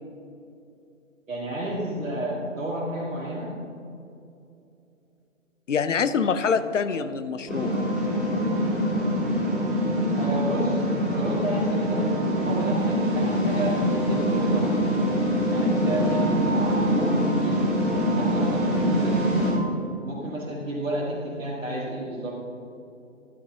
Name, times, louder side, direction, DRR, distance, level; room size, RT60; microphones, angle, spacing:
voice 1, 1.3-3.5 10.1-14.9 15.5-17.6 18.1-19.2 20.0-22.4, right 1 dB, 70° right, -6 dB, 2.1 m, -31 dB
voice 2, 5.7-7.9, left 6 dB, 65° left, 11 dB, 0.7 m, -25 dB
sound 1, 7.5-19.5, equal, ahead, 2.6 m, -24 dB
13.0 x 12.5 x 2.8 m, 2.7 s
figure-of-eight pair, 135°, 40 cm